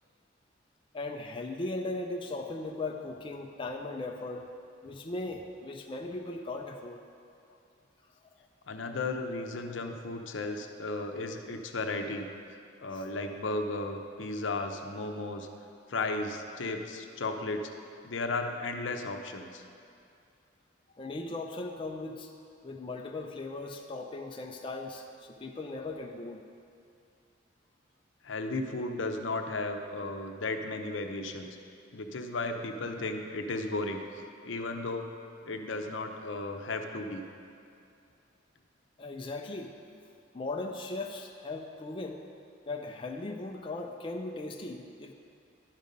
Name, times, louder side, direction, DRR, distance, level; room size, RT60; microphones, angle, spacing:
voice 1, 0.9-4.5 4.8-7.0 8.4-8.5 12.9-13.0 20.9-22.3 22.6-26.4 39.0-40.0 40.3-42.2 42.7-45.1, left 2 dB, 25° left, 2 dB, 0.4 m, -38 dB
voice 2, 8.7-12.3 12.8-15.5 15.9-17.7 18.0-19.6 28.2-31.6 31.9-34.0 34.4-35.1 35.4-37.2, left 2 dB, 75° left, 5 dB, 0.7 m, -34 dB
11.5 x 5.3 x 5.2 m, 2.5 s
head